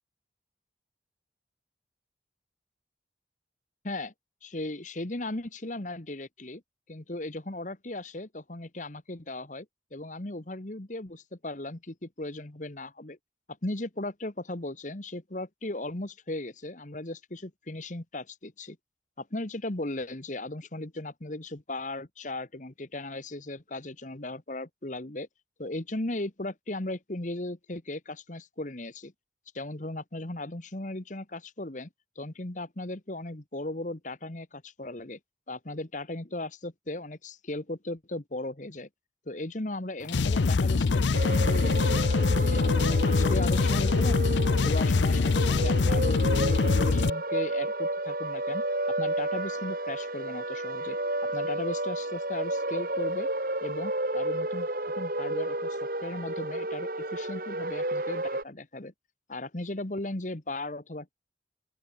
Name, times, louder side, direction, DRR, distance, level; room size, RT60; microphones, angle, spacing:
voice 1, 4.4-6.6 6.9-9.7 9.9-13.2 13.6-18.8 19.2-25.3 25.6-29.1 29.5-31.9 32.1-35.2 35.5-38.9 39.3-42.0 42.4-44.2 44.5-48.6 49.0-51.0 51.3-53.3 53.6-54.7 55.0-58.9 59.3-61.1, left 2 dB, 45° left, 1.5 m, -37 dB
sound 1, 40.0-47.1, left 4 dB, 85° left, 0.6 m, -24 dB
sound 2, 41.1-58.4, right 1 dB, 50° right, 4.4 m, -32 dB
open air
head